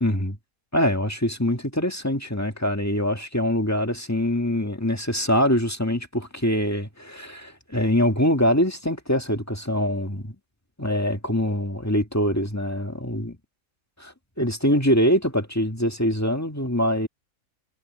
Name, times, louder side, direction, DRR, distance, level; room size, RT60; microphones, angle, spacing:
voice 1, 0.0-0.4 0.7-10.3 10.8-13.4 14.0-17.1, equal, 10° left, 1.7 m, -24 dB
omnidirectional pair, 1.6 m